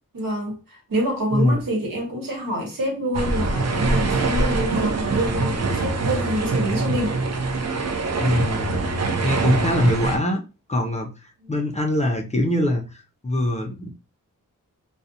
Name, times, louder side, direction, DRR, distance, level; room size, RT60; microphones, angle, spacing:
voice 1, 0.1-7.2 11.4-11.5, right 1 dB, 80° right, 1.1 m, -27 dB
sound 1, 3.1-10.2, right 3 dB, 50° right, 0.5 m, -23 dB
voice 2, 8.2-8.8 9.2-10.4 10.7-11.1 11.5-13.9, left 1 dB, 20° left, 0.4 m, -23 dB
2.4 x 2.0 x 2.7 m
wide cardioid pair, 110°, 33 cm